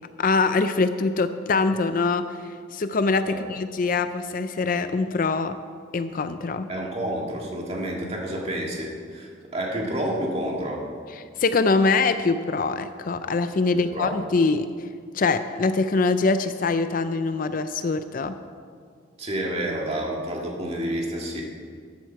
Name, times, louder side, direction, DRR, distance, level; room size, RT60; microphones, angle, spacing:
voice 1, 0.2-5.6 5.9-6.7 11.4-14.7 15.1-18.3, left 3 dB, 45° left, 10 dB, 0.4 m, -23 dB
voice 2, 6.7-10.8 13.9-14.2 19.2-21.4, right 1 dB, 30° right, -1 dB, 1.9 m, -29 dB
13.0 x 11.5 x 4.6 m, 2.1 s
head